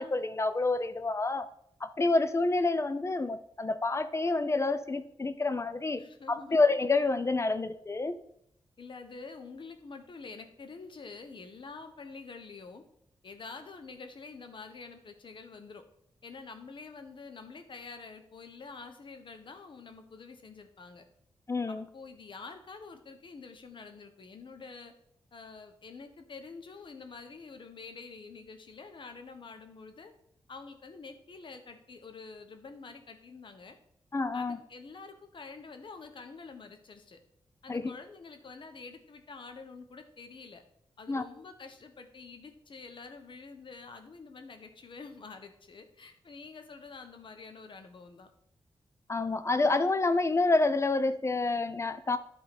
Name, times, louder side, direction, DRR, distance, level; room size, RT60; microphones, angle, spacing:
voice 1, 0.0-1.5 1.8-6.0 6.3-8.2 21.5-21.9 34.1-34.6 37.7-37.9 41.1-41.2 49.1-52.2, left 3 dB, 30° left, 12 dB, 0.7 m, -28 dB
voice 2, 6.0-6.6 7.0-7.1 8.8-12.8 13.2-15.8 16.2-21.1 21.7-24.9 25.3-30.1 30.5-33.8 34.3-37.2 37.6-40.6 41.0-48.3, left 4 dB, 55° left, 7 dB, 1.2 m, -47 dB
11.0 x 3.9 x 5.2 m, 0.72 s
cardioid pair, 75°, 10 cm